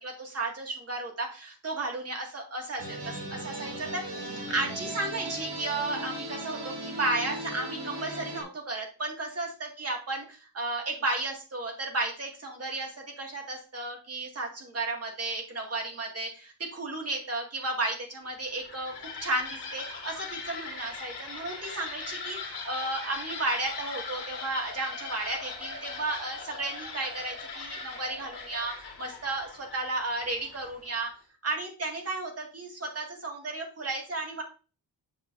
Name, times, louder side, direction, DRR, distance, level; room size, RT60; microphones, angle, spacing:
voice 1, 0.0-31.1 31.4-34.4, right 2 dB, 35° right, 1 dB, 2.1 m, -33 dB
sound 1, 2.8-8.4, right 1 dB, 85° right, 2.4 m, -37 dB
sound 2, 18.4-30.9, left 4 dB, 80° left, 1.9 m, -40 dB
8.3 x 6.7 x 2.6 m, 0.34 s
wide cardioid pair, 150°, 40 cm